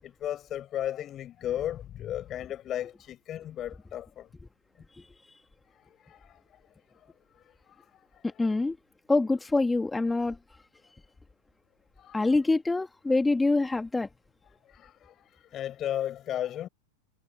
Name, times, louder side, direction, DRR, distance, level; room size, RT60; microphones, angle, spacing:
voice 1, 0.0-4.3 5.7-6.6 6.9-7.1 7.3-8.2 12.0-12.3 14.7-16.7, left 11 dB, 30° left, 7.2 m, -36 dB
voice 2, 8.2-8.8 9.1-10.4 12.1-14.1, left 3 dB, 10° left, 2.9 m, -25 dB
figure-of-eight pair, 90°, 0 cm